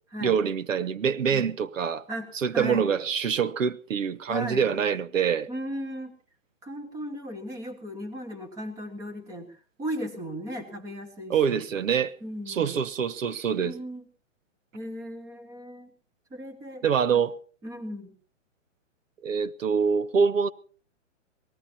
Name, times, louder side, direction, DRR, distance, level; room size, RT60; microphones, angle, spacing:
voice 1, 0.2-2.0 2.3-5.5 11.3-12.1 12.5-13.7 16.8-17.4 19.2-20.5, right 6 dB, 80° right, 1.2 m, -25 dB
voice 2, 2.1-2.9 4.3-4.7 5.5-6.1 6.6-11.6 12.2-12.8 13.6-14.1 14.7-15.9 16.3-16.8 17.6-18.1, equal, 10° right, 1.5 m, -36 dB
27.0 x 18.5 x 2.8 m
hypercardioid pair, 175°, 38 cm